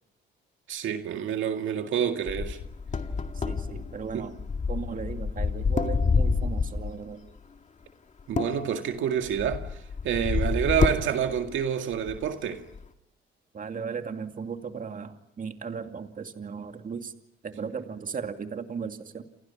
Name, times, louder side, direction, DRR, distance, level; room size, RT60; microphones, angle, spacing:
voice 1, 0.7-2.6 4.1-4.3 8.3-12.6, right 9 dB, 75° right, 2.1 m, -28 dB
sound 1, 2.3-7.0 8.2-11.7 11.9-12.3 12.7-12.8, left 4 dB, 35° left, 2.1 m, -28 dB
voice 2, 3.3-7.3 13.5-17.1 17.4-19.2, right 6 dB, 45° right, 2.5 m, -36 dB
29.5 x 28.0 x 5.8 m
cardioid pair, 90°, 20 cm